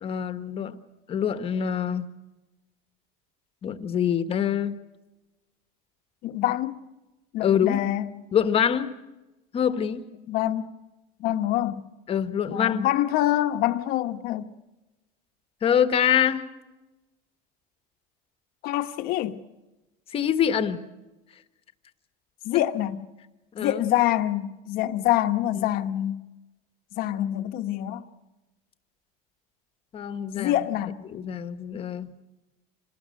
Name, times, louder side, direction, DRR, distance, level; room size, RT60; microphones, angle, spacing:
voice 1, 0.0-0.8 1.1-2.1 3.6-4.8 7.4-7.8 8.3-8.9 9.5-10.1 12.1-12.9 15.6-16.4 20.1-20.8 22.5-22.6 23.5-23.9 25.6-25.7 29.9-30.5 31.1-32.1, left 8 dB, 35° left, 1.3 m, -25 dB
voice 2, 6.2-6.8 7.3-8.2 10.3-10.7 11.2-11.8 12.5-14.5 18.6-19.4 22.4-23.0 23.6-26.2 26.9-28.0 30.3-31.0, left 13 dB, 60° left, 1.2 m, -26 dB
26.5 x 19.0 x 6.5 m
cardioid pair, 140°, 18 cm